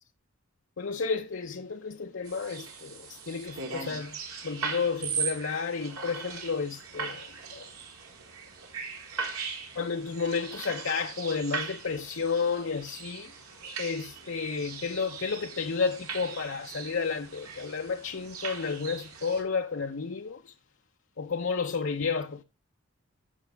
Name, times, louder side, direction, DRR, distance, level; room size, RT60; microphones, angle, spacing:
voice 1, 0.8-4.2 4.4-7.7 9.7-13.3 13.6-20.6 21.2-22.4, left 5 dB, 60° left, 0.6 m, -32 dB
sound 1, 2.2-19.4, right 5 dB, 85° right, 3.6 m, -39 dB
15.0 x 6.0 x 3.4 m
head